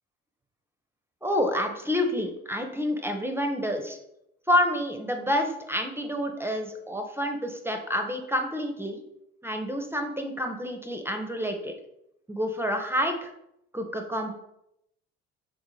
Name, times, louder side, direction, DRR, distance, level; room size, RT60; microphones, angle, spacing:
voice 1, 1.2-4.0 4.5-9.0 9.4-11.7 12.3-13.3 13.7-14.3, equal, 10° right, 4 dB, 0.5 m, -28 dB
3.7 x 2.5 x 3.1 m, 0.80 s
hypercardioid pair, 65°, 29 cm